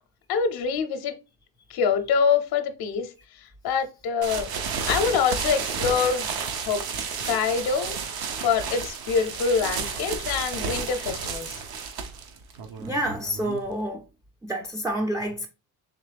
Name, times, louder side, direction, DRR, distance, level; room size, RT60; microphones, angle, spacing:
voice 1, 0.3-1.2 1.7-4.5 4.9-6.4 6.6-6.8 7.2-8.0 8.4-11.6, left 6 dB, 65° left, 0.6 m, -25 dB
sound 1, 4.2-13.8, right 5 dB, 65° right, 0.8 m, -32 dB
voice 2, 12.8-14.0 14.4-15.5, right 1 dB, 10° right, 0.4 m, -28 dB
3.6 x 3.0 x 3.3 m
cardioid pair, 110°, 41 cm